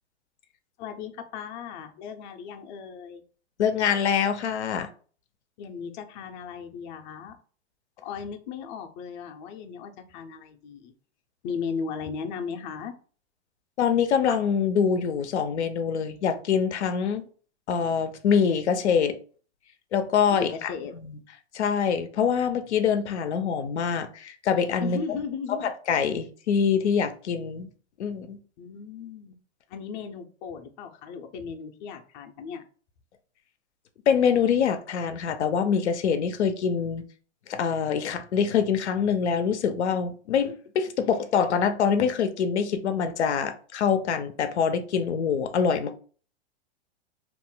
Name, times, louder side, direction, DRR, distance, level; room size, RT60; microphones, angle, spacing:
voice 1, 0.8-3.2 5.6-7.4 8.0-10.9 11.4-12.9 20.3-20.9 24.8-25.7 28.6-29.4 29.7-32.6, left 6 dB, 45° left, 0.6 m, -36 dB
voice 2, 3.6-4.9 13.8-17.3 17.7-19.2 19.9-21.2 21.5-25.0 25.6-27.7 28.0-28.4 34.1-37.0 37.5-46.0, left 7 dB, 90° left, 0.6 m, -25 dB
2.5 x 2.0 x 3.8 m
hypercardioid pair, 125°, 33 cm